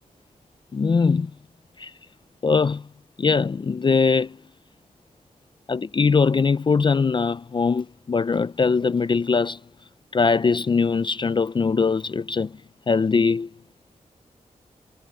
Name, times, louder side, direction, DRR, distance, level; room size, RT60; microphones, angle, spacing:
voice 1, 0.7-1.3 1.8-1.9 2.4-2.9 3.2-4.4 5.7-9.6 10.1-12.6 12.9-13.5, left 5 dB, 35° left, 0.4 m, -21 dB
wide cardioid pair, 110°, 14 cm